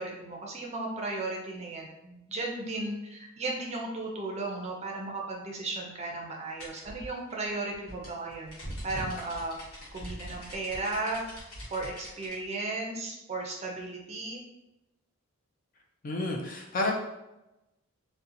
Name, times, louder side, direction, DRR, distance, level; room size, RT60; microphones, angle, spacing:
voice 1, 0.0-8.5 8.8-9.6 9.9-11.2 11.7-14.4, right 2 dB, 30° right, -1 dB, 0.4 m, -35 dB
sound 1, 6.6-12.4, equal, 75° left, 1.0 m, -42 dB
voice 2, 16.0-16.9, left 2 dB, 40° left, 0 dB, 0.4 m, -30 dB
2.7 x 2.1 x 2.5 m, 0.96 s
head